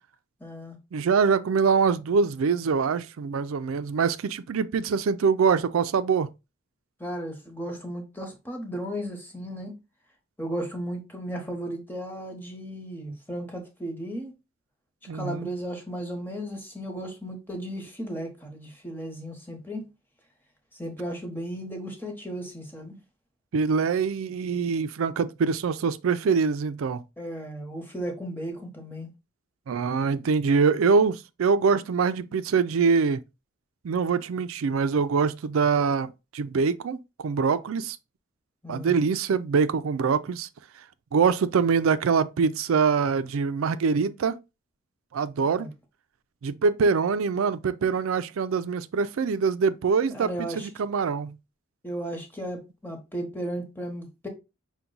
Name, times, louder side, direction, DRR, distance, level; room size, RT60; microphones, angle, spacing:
voice 1, 0.4-0.8 7.0-9.7 10.4-14.3 15.1-19.9 20.7-23.0 27.2-29.1 38.6-38.9 45.4-45.7 50.1-50.7 51.8-54.3, right 1 dB, 10° left, 1.0 m, -35 dB
voice 2, 0.9-6.3 15.1-15.5 23.5-27.0 29.7-33.2 33.8-38.0 38.7-40.5 41.1-44.4 45.1-45.7 46.4-51.3, right 5 dB, 85° right, 0.4 m, -24 dB
5.7 x 2.2 x 3.8 m
head